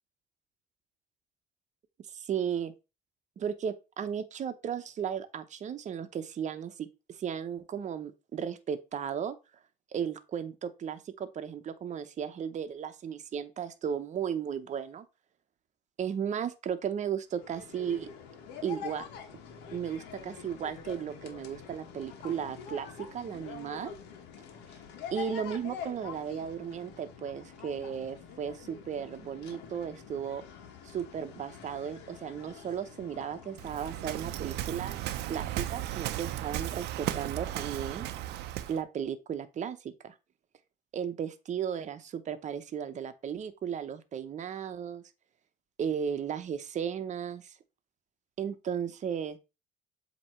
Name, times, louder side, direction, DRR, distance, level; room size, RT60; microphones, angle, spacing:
voice 1, 2.1-2.7 3.4-9.3 9.9-15.0 16.0-18.1 18.6-19.0 19.7-23.9 25.1-30.4 30.8-35.0 35.3-38.1 38.7-40.1 40.9-45.0 45.8-47.5 48.4-49.4, right 8 dB, 45° right, 0.9 m, -35 dB
sound 1, 17.3-35.8, left 7 dB, 90° left, 1.2 m, -46 dB
Waves surf, 33.6-38.8, right 13 dB, 80° right, 0.6 m, -35 dB
7.6 x 3.0 x 4.3 m
cardioid pair, 110°, 17 cm